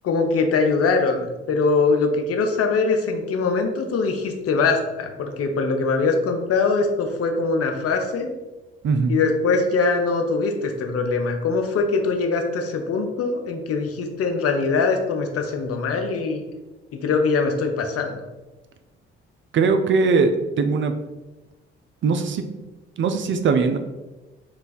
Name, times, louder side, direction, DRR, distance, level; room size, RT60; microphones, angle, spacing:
voice 1, 0.0-8.3 9.1-16.4 17.0-18.2, left 4 dB, 50° left, 4 dB, 0.7 m, -22 dB
voice 2, 8.8-9.2 19.5-20.3 20.6-20.9 22.0-22.4 23.0-23.8, right 4 dB, 40° right, 7 dB, 0.4 m, -20 dB
3.2 x 2.3 x 4.0 m, 1.1 s
hypercardioid pair, 45°, 30 cm